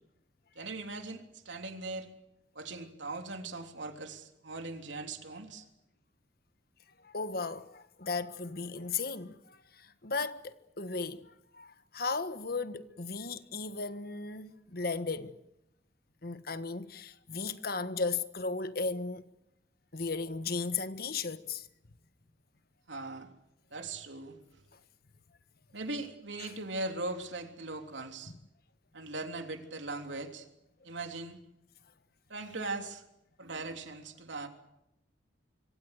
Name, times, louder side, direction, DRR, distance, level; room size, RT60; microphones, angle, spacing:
voice 1, 0.5-2.1 2.5-5.7 22.9-23.3 23.7-24.6 25.7-28.3 28.9-30.5 30.8-31.4 32.3-33.0 33.4-34.5, right 2 dB, 80° right, 3.3 m, -40 dB
voice 2, 7.0-15.3 16.2-19.2 19.9-21.7 26.4-26.5, left 4 dB, 55° left, 1.5 m, -36 dB
26.0 x 25.0 x 6.6 m
head